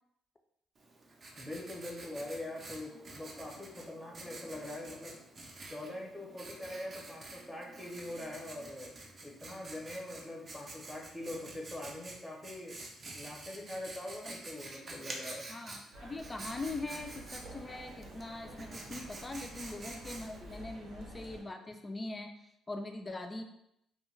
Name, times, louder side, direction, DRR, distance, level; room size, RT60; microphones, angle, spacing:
Writing, 0.8-20.6, right 2 dB, 40° right, 0.5 m, -49 dB
voice 1, 1.4-5.2 5.7-9.0 9.2-12.8 13.1-15.5, left 1 dB, ahead, -2 dB, 0.7 m, -43 dB
voice 2, 15.5-22.3 22.7-23.4, left 2 dB, 25° left, 5 dB, 0.3 m, -42 dB
sound 1, 15.9-21.4, right 1 dB, 80° right, 0.7 m, -50 dB
2.2 x 2.2 x 3.1 m, 0.78 s
cardioid pair, 95°, 0 cm